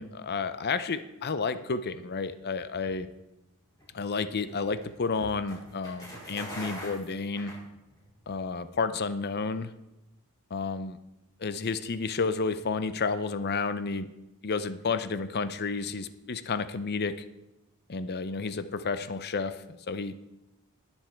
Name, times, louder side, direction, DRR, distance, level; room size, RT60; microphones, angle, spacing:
voice 1, 0.0-3.1 3.9-7.6 8.3-9.7 10.5-11.0 11.4-14.1 14.4-17.2 17.9-20.1, left 4 dB, 45° left, 12 dB, 0.6 m, -31 dB
sound 1, 3.7-8.2, equal, 15° left, 5.3 m, -43 dB
20.0 x 7.3 x 4.5 m, 0.94 s
head